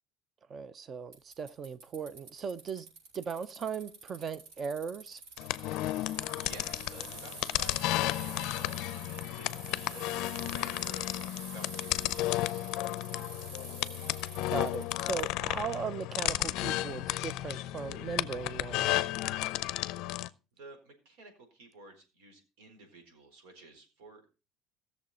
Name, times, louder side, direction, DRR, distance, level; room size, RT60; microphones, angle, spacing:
voice 1, 0.5-2.9 3.1-5.2 14.5-19.0, right 6 dB, 25° right, 0.5 m, -38 dB
Bicycle, 1.1-15.2, right 3 dB, 70° right, 6.6 m, -47 dB
sound 1, 5.4-20.3, left 17 dB, 55° left, 0.5 m, -33 dB
voice 2, 5.9-10.1 10.3-13.4 20.6-24.3, right 2 dB, 85° right, 4.3 m, -54 dB
17.0 x 6.9 x 4.2 m
cardioid pair, 170°, 0 cm